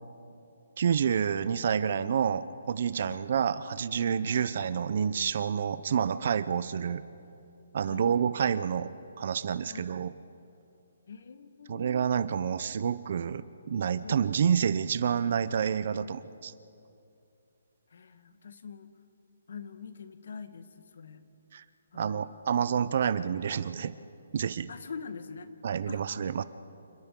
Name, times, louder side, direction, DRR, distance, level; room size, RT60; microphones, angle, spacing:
voice 1, 0.8-7.0 7.7-10.1 11.7-16.5 21.5-21.6 21.9-24.0 24.3-24.7 25.6-26.4, right 7 dB, 50° right, 15 dB, 0.7 m, -28 dB
voice 2, 2.9-3.3 4.3-4.5 7.8-8.1 9.6-9.9 11.1-12.0 14.0-14.3 17.9-18.9 19.5-21.2 21.9-22.3 24.7-25.5 25.9-26.0, left 5 dB, 65° left, 10 dB, 1.5 m, -44 dB
29.0 x 26.0 x 3.8 m, 2.7 s
hypercardioid pair, 165°, 0 cm